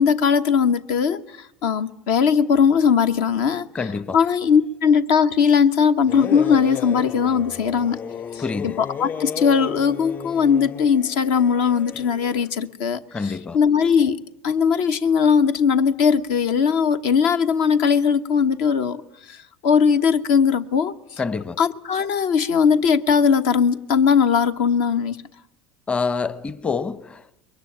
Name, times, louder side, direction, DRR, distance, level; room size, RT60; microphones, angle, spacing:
voice 1, 0.0-3.7 4.1-8.0 8.3-14.2 14.4-19.0 19.3-19.4 19.6-20.9 21.6-25.2, left 6 dB, 65° left, 1.1 m, -19 dB
voice 2, 3.7-4.2 8.4-8.8 13.1-13.6 21.2-21.6 25.9-27.4, left 4 dB, 20° left, 1.0 m, -27 dB
sound 1, 6.1-12.5, left 7 dB, 40° left, 4.1 m, -34 dB
22.5 x 20.0 x 9.0 m
hypercardioid pair, 80°, 5 cm